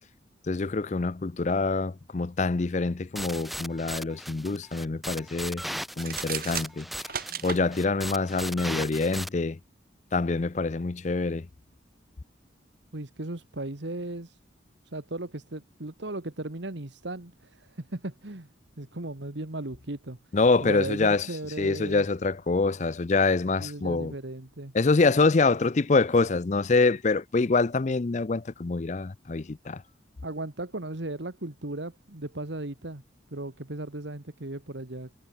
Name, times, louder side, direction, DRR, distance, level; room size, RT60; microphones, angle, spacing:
voice 1, 0.5-5.6 6.0-6.9 7.4-9.6 10.1-11.5 20.3-21.3 21.6-24.1 24.7-29.8, left 3 dB, 35° left, 0.5 m, -25 dB
sound 1, 3.2-9.3, equal, ahead, 1.6 m, -37 dB
sound 2, 5.9-7.6, right 8 dB, 50° right, 4.5 m, -34 dB
voice 2, 12.9-14.4 14.8-18.5 18.8-20.2 20.6-22.0 23.6-24.7 30.2-33.0 33.3-35.1, right 2 dB, 70° right, 1.7 m, -36 dB
head